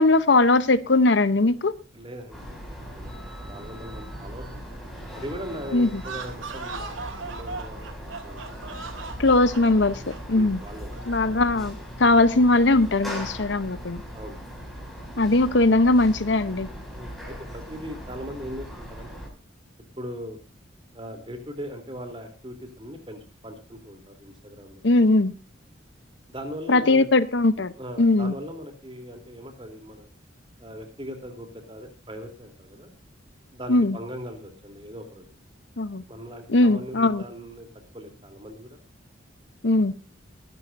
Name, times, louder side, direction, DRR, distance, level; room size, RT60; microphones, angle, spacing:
voice 1, 0.0-1.7 5.7-6.0 9.2-10.6 11.1-14.0 15.2-16.7 24.8-25.3 26.7-28.3 33.7-34.0 35.8-36.0 36.5-37.2 39.6-39.9, left 2 dB, 60° left, 0.8 m, -20 dB
voice 2, 1.9-4.6 5.1-6.9 7.3-8.8 10.3-11.0 13.4-13.6 14.1-14.5 16.9-19.2 20.0-20.4 20.9-24.8 26.3-27.1 27.8-30.1 30.6-32.9 33.5-35.3 36.1-37.7 37.9-38.8, equal, 25° right, 3.4 m, -39 dB
sound 1, 2.3-19.3, equal, ahead, 6.5 m, -39 dB
sound 2, 5.9-11.4, right 4 dB, 85° right, 3.0 m, -38 dB
22.5 x 12.0 x 2.7 m
head